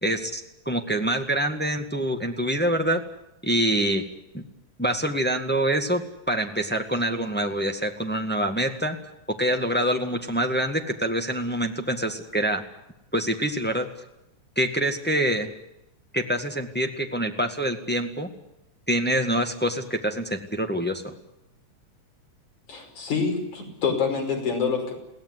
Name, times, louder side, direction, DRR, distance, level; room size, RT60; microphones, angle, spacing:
voice 1, 0.0-3.0 3.4-4.0 4.3-4.4 4.8-9.0 9.4-12.6 13.1-13.9 14.5-15.5 16.1-18.3 18.9-21.1, right 1 dB, 5° left, 5 dB, 0.9 m, -25 dB
voice 2, 22.7-24.9, left 5 dB, 70° left, 2 dB, 6.8 m, -26 dB
22.0 x 17.0 x 9.8 m, 0.88 s
omnidirectional pair, 3.6 m